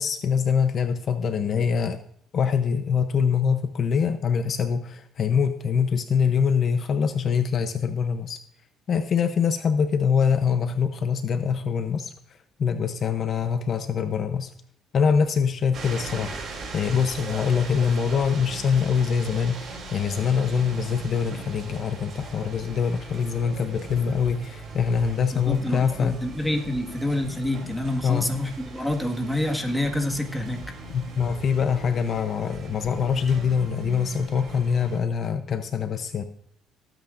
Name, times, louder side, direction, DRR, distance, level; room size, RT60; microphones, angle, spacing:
voice 1, 0.0-2.0 2.3-8.4 8.9-14.5 14.9-16.3 16.7-26.2 28.0-28.3 30.9-36.2, left 6 dB, 50° left, 9 dB, 0.7 m, -24 dB
sound 1, 15.7-35.0, right 3 dB, 50° right, 3.1 m, -39 dB
voice 2, 25.3-30.6, left 1 dB, 5° left, 3 dB, 1.7 m, -27 dB
19.0 x 9.1 x 2.6 m, 0.66 s
cardioid pair, 110°, 0 cm